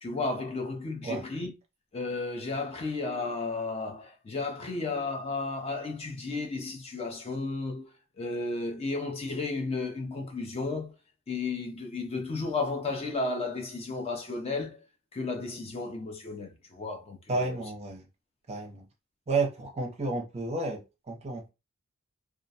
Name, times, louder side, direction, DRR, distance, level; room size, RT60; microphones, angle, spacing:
voice 1, 0.0-1.5 1.9-7.9 8.2-10.9 11.3-14.8 15.1-17.6, left 3 dB, 25° left, 0.4 m, -33 dB
voice 2, 17.3-18.0 18.5-18.8 19.3-21.5, right 3 dB, 30° right, 0.6 m, -31 dB
2.3 x 2.1 x 2.7 m
head